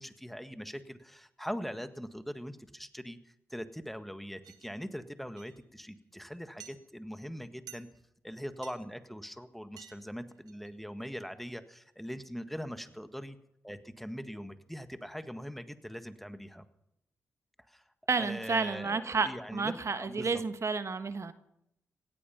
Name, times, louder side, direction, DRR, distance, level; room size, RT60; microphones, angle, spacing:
voice 1, 0.0-3.2 3.5-7.9 8.2-13.4 13.6-16.6 17.7-17.8 18.2-20.4, equal, ahead, 10 dB, 1.6 m, -42 dB
sound 1, 4.4-4.7 5.4-5.6 6.6-6.8 7.7-8.0 8.6-8.8 9.8-10.0 10.3-10.7, right 10 dB, 75° right, 1.5 m, -50 dB
voice 2, 18.1-21.3, right 4 dB, 45° right, 11 dB, 1.2 m, -31 dB
17.5 x 14.5 x 5.8 m, 0.80 s
hypercardioid pair, 40°, 7 cm